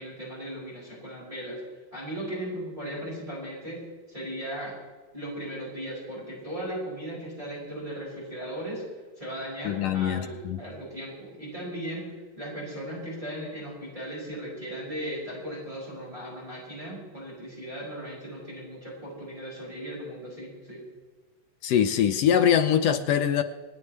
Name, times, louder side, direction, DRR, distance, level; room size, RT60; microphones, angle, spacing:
voice 1, 0.0-1.6 1.9-4.7 5.1-8.8 9.2-20.8, right 1 dB, 10° right, -6 dB, 5.3 m, -37 dB
voice 2, 9.6-10.6 21.6-23.4, left 9 dB, 75° left, 8 dB, 1.5 m, -23 dB
27.5 x 9.6 x 3.3 m, 1.4 s
omnidirectional pair, 3.4 m